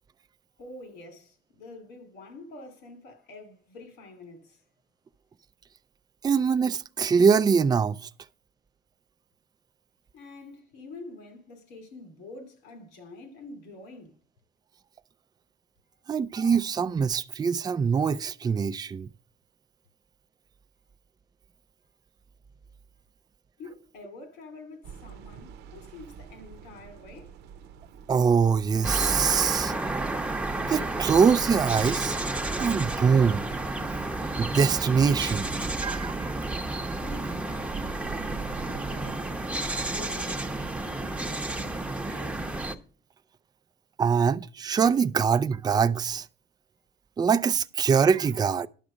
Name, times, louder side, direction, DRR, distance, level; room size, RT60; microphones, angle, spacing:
voice 1, 0.6-4.6 10.1-14.2 23.6-27.4 37.0-39.4 39.8-42.5, left 2 dB, 85° left, 2.6 m, -47 dB
voice 2, 6.2-8.0 16.1-19.1 28.1-29.7 30.7-32.1 32.6-33.4 34.4-35.5 35.8-36.3 44.0-46.3 47.2-48.7, right 6 dB, 25° right, 0.4 m, -23 dB
sound 1, 24.8-40.8, right 7 dB, 80° right, 0.8 m, -45 dB
sound 2, 28.8-42.8, right 2 dB, 5° right, 0.9 m, -31 dB
11.0 x 6.1 x 5.0 m
cardioid pair, 110°, 17 cm